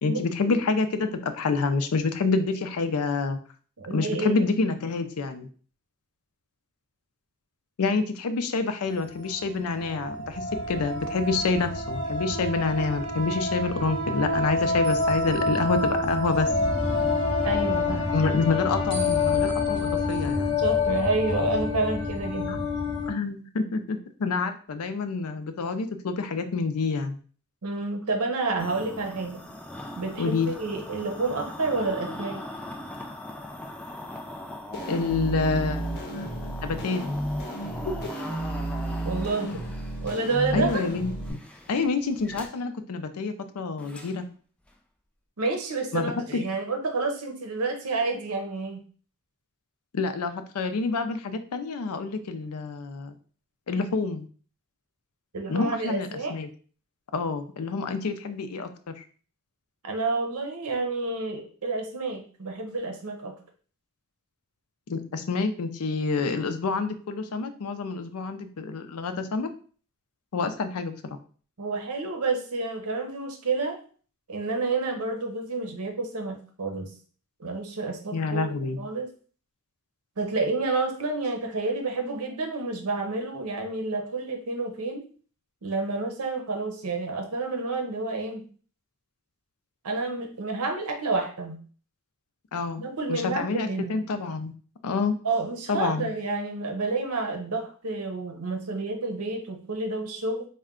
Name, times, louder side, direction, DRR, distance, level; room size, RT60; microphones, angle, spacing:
voice 1, 0.0-3.4 3.9-5.5 7.8-16.5 18.1-20.6 22.5-22.6 23.1-27.2 30.2-30.5 34.9-37.0 40.5-41.4 41.7-44.2 45.9-46.1 49.9-53.1 53.7-54.2 55.5-56.5 57.1-58.7 59.0-59.1 64.9-69.5 70.3-70.9 78.1-78.9 92.5-92.8 93.1-94.5 94.8-95.2 95.7-96.1, left 4 dB, 80° left, 9 dB, 0.5 m, -28 dB
voice 2, 3.8-4.4 17.4-18.1 20.6-22.7 27.6-29.4 30.0-32.4 39.0-39.6 40.0-40.8 45.4-48.8 55.3-56.3 59.8-63.3 71.6-73.8 74.3-76.9 77.4-78.5 78.8-79.1 80.2-85.0 85.6-88.5 89.8-91.6 92.8-94.0 95.2-100.5, right 3 dB, 80° right, 3 dB, 0.8 m, -29 dB
sound 1, 9.0-9.1 9.7-23.1, left 3 dB, 20° left, 1.1 m, -27 dB
sound 2, 28.6-42.5 43.8-44.2 44.7-44.8, left 1 dB, 5° left, 0.3 m, -41 dB
sound 3, 34.7-41.3, right 1 dB, 50° left, 0.9 m, -32 dB
4.3 x 2.2 x 3.6 m, 0.42 s
head